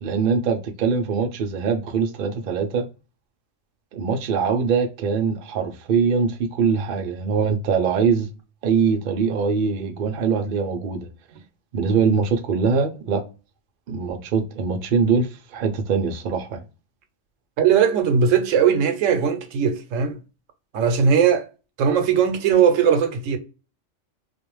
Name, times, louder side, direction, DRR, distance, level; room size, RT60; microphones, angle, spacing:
voice 1, 0.0-2.8 3.9-8.3 8.6-11.1 11.7-13.2 13.9-16.6, right 5 dB, 60° right, 0.5 m, -22 dB
voice 2, 17.6-20.2 20.7-21.5 21.8-23.4, right 7 dB, 80° right, 0.9 m, -19 dB
2.5 x 2.1 x 2.9 m
omnidirectional pair, 1.3 m